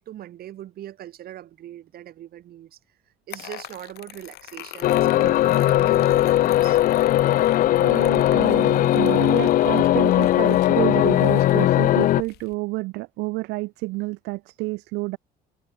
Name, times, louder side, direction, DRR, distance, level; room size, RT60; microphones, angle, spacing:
voice 1, 0.0-2.8 3.3-6.8, right 12 dB, 65° right, 4.6 m, -41 dB
sound 1, 3.3-12.5, left 16 dB, 75° left, 1.8 m, -41 dB
sound 2, 4.8-12.2, left 14 dB, 55° left, 0.4 m, -19 dB
voice 2, 7.8-15.2, right 22 dB, 85° right, 0.4 m, -29 dB
cardioid pair, 110°, 17 cm